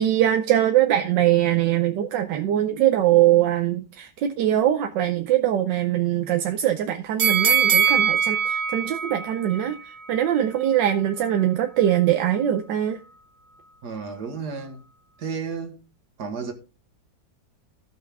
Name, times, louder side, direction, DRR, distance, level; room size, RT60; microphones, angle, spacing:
voice 1, 0.0-13.0, right 12 dB, 80° right, 1.4 m, -22 dB
sound 1, 7.2-10.3 10.7-10.8, right 7 dB, 45° right, 1.1 m, -22 dB
voice 2, 13.8-14.8 15.2-15.9 16.2-16.5, right 5 dB, 65° right, 2.1 m, -32 dB
15.5 x 6.0 x 3.5 m
omnidirectional pair, 1.9 m